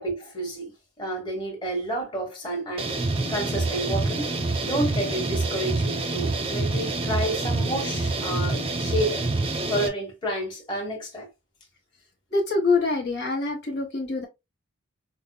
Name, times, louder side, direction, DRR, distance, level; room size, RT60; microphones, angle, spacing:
voice 1, 0.0-2.9 3.3-4.3 4.6-9.2 9.7-11.3, right 1 dB, 25° left, 1.2 m, -30 dB
sound 1, 2.8-9.9, right 2 dB, 25° right, 0.4 m, -27 dB
voice 2, 12.3-14.3, left 3 dB, 55° left, 1.1 m, -25 dB
5.2 x 2.0 x 2.2 m
head